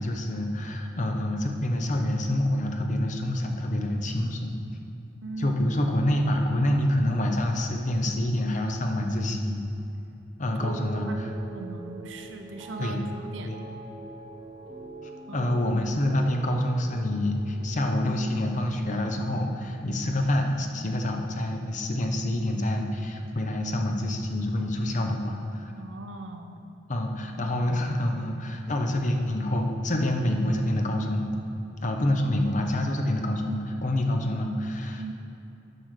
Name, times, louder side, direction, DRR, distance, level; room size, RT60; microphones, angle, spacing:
voice 1, 0.0-4.6 5.4-9.7 10.4-11.3 12.8-13.0 13.4-13.6 15.0-25.7 26.9-31.3 31.8-35.1, left 1 dB, 40° left, 3 dB, 0.8 m, -27 dB
voice 2, 5.2-5.6 10.5-11.2 11.5-13.5 15.3-15.5 25.8-26.6 35.0-35.1, right 2 dB, 70° right, 5 dB, 0.7 m, -39 dB
sound 1, 10.6-21.0 21.3-21.8, right 2 dB, 25° right, 1.2 m, -45 dB
9.6 x 4.9 x 6.6 m, 2.7 s
head